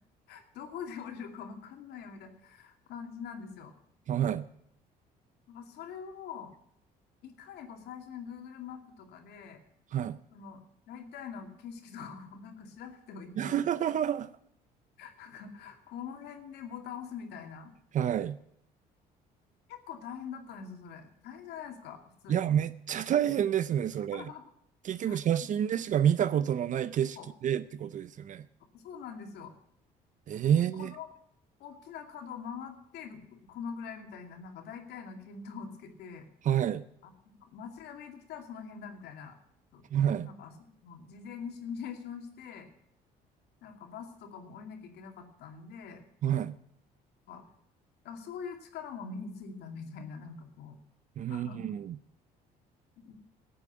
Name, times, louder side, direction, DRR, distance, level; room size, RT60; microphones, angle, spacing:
voice 1, 0.3-3.7 5.5-6.5 7.2-9.6 10.3-10.6 10.9-13.6 15.0-17.7 19.7-22.5 24.1-24.5 25.1-25.2 27.2-27.3 28.7-29.5 30.5-31.1 31.6-36.3 37.0-39.4 39.7-39.8 40.2-40.5 40.8-42.7 43.6-46.0 47.3-47.4 48.0-50.8 51.3-51.7 53.0-53.1, left 6 dB, 75° left, 5 dB, 2.5 m, -44 dB
voice 2, 4.1-4.5 9.9-10.2 13.4-14.3 17.9-18.4 22.3-24.2 24.8-27.2 27.4-28.5 30.3-30.9 36.4-36.8 39.9-40.3 46.2-46.5 51.2-52.0, right 9 dB, 50° right, 16 dB, 0.6 m, -28 dB
13.5 x 8.7 x 8.0 m, 0.74 s
cardioid pair, 110°, 17 cm